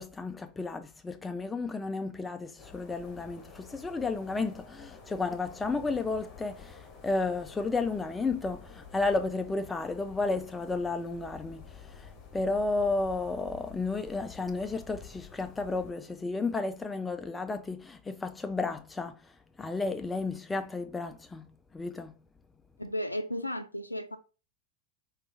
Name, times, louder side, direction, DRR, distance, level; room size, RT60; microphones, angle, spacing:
voice 1, 0.0-11.6 12.0-19.2 19.6-21.5 21.7-22.1, left 3 dB, 10° left, 0.3 m, -32 dB
sound 1, 2.6-15.9, left 6 dB, 30° left, 1.0 m, -50 dB
voice 2, 22.8-24.2, equal, 85° left, 0.4 m, -34 dB
4.9 x 2.4 x 3.3 m
figure-of-eight pair, 90°, 0 cm